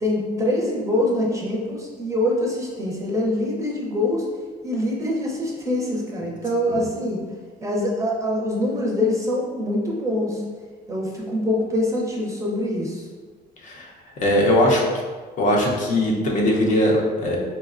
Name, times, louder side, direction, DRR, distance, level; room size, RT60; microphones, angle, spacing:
voice 1, 0.0-4.3 4.6-7.2 7.6-10.4 10.9-13.1, left 1 dB, 20° right, -3 dB, 0.6 m, -24 dB
voice 2, 14.2-14.8 15.4-17.4, left 1 dB, 50° left, -2 dB, 0.7 m, -20 dB
4.0 x 2.2 x 2.4 m, 1.5 s
cardioid pair, 110°, 17 cm